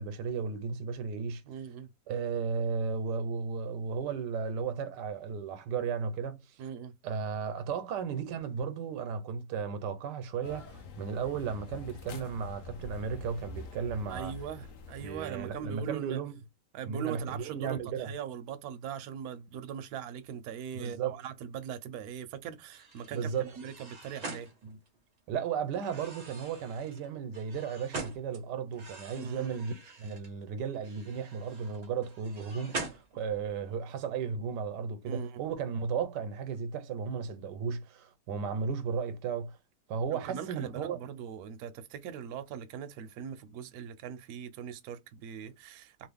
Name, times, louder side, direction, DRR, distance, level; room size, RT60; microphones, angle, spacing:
voice 1, 0.0-1.4 2.1-6.4 7.0-14.3 15.0-16.4 16.9-18.1 20.7-21.1 23.1-23.5 24.6-24.8 25.3-29.7 30.0-39.6 39.9-41.0, right 6 dB, 90° right, 1.2 m, -34 dB
voice 2, 1.4-1.9 6.6-6.9 14.1-16.2 16.7-24.5 29.1-29.5 35.0-35.4 40.1-46.1, right 8 dB, 70° right, 1.0 m, -41 dB
sound 1, 10.4-15.8, left 4 dB, 65° left, 0.8 m, -46 dB
sound 2, 22.7-25.2 25.7-28.4 28.7-30.3 30.7-33.6, right 3 dB, 50° right, 0.4 m, -44 dB
2.9 x 2.5 x 3.3 m
omnidirectional pair, 1.8 m